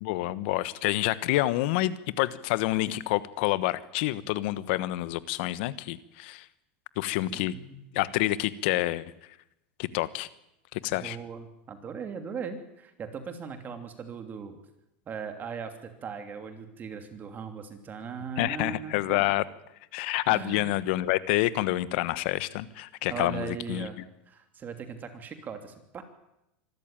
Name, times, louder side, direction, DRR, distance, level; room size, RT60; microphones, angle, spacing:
voice 1, 0.0-6.5 7.0-7.5 7.9-9.1 9.8-10.3 10.7-11.2 18.4-19.4 19.9-23.9, left 17 dB, 65° left, 16 dB, 1.2 m, -28 dB
voice 2, 7.2-7.9 11.0-14.6 15.1-19.2 20.3-20.7 23.1-24.0 24.3-26.0, right 6 dB, 30° right, 7 dB, 2.9 m, -39 dB
25.0 x 14.0 x 9.1 m, 0.88 s
supercardioid pair, 125°, 6 cm